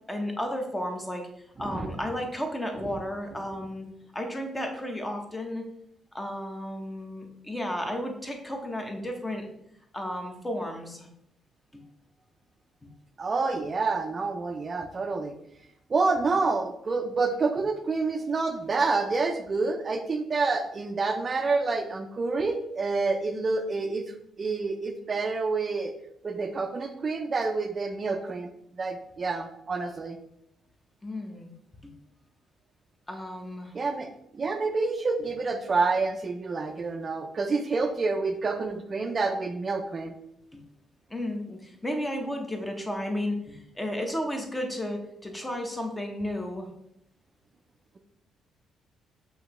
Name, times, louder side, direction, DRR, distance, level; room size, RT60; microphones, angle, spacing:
voice 1, 0.1-1.3 1.6-3.9 4.1-5.6 6.1-9.5 9.9-11.1 11.7-11.9 12.8-12.9 31.0-31.5 31.8-31.9 33.1-33.7 40.5-40.6 41.1-46.7, left 1 dB, 15° left, 3 dB, 0.8 m, -33 dB
voice 2, 13.2-15.4 15.9-24.0 24.4-25.9 26.2-28.5 28.8-30.2 33.7-40.1, right 3 dB, 40° right, 5 dB, 0.4 m, -28 dB
5.6 x 2.8 x 3.0 m, 0.76 s
cardioid pair, 90°, 0 cm